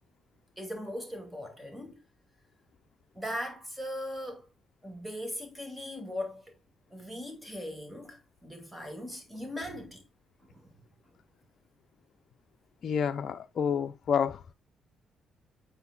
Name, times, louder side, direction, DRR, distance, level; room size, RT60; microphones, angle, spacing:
voice 1, 0.6-2.0 3.1-4.5 4.8-6.6 6.9-10.1 10.4-10.7, left 1 dB, 5° right, 2.4 m, -39 dB
voice 2, 12.8-14.4, left 7 dB, 55° left, 0.5 m, -29 dB
9.0 x 4.4 x 2.3 m
cardioid pair, 90°, 0 cm